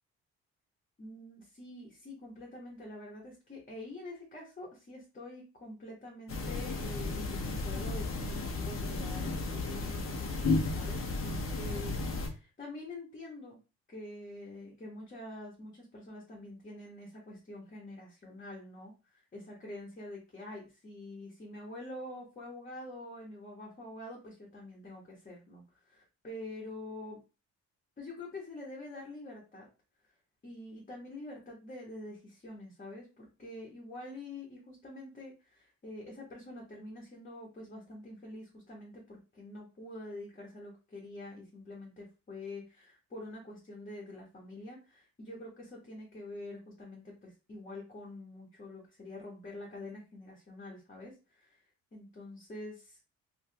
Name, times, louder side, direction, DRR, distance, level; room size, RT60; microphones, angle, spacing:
voice 1, 1.0-13.6 13.9-27.2 28.0-29.7 30.4-51.6 51.9-53.0, left 2 dB, 30° left, -2 dB, 1.2 m, -46 dB
sound 1, 6.3-12.3, left 3 dB, 45° left, 0.9 m, -33 dB
3.2 x 2.5 x 2.8 m, 0.30 s
cardioid pair, 90°, 30 cm